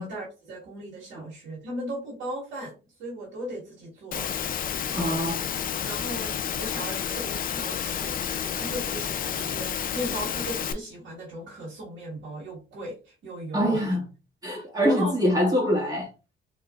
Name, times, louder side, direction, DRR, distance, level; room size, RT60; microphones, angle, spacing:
voice 1, 0.0-5.2 5.8-13.8 14.8-15.2, right 1 dB, 75° right, 1.6 m, -37 dB
Engine / Mechanisms, 4.1-10.7, left 8 dB, 45° left, 0.4 m, -30 dB
voice 2, 4.9-5.4 13.5-14.0 14.4-16.1, equal, 20° right, 1.8 m, -24 dB
3.8 x 2.9 x 2.4 m
cardioid pair, 90°, 20 cm